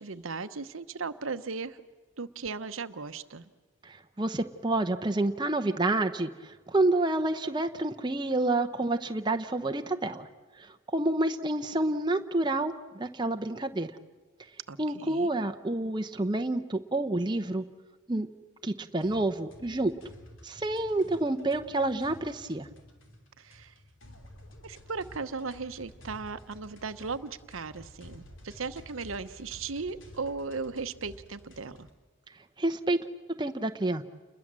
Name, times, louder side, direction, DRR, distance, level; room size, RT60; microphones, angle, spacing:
voice 1, 0.0-1.8 2.2-3.5 14.7-15.3 23.4-23.7 24.6-31.9, right 4 dB, 90° right, 10 dB, 1.0 m, -37 dB
voice 2, 3.8-10.3 10.6-13.9 14.8-17.6 18.1-18.3 18.6-19.9 20.4-22.7 32.6-33.0 33.4-34.0, right 2 dB, 20° right, 6 dB, 0.9 m, -29 dB
sound 1, 19.0-31.9, left 1 dB, 75° left, 3.2 m, -52 dB
29.0 x 21.5 x 7.5 m, 1.3 s
head